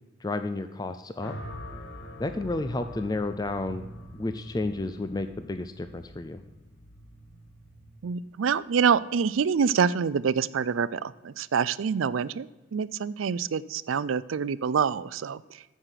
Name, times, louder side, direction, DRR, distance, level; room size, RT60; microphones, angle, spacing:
voice 1, 0.2-1.3 2.2-3.8 4.2-6.4, left 2 dB, 20° left, 9 dB, 0.4 m, -31 dB
sound 1, 1.2-9.5, equal, 70° left, 1.9 m, -45 dB
voice 2, 8.0-15.4, right 6 dB, 85° right, 18 dB, 0.4 m, -26 dB
15.0 x 6.4 x 5.8 m, 1.1 s
head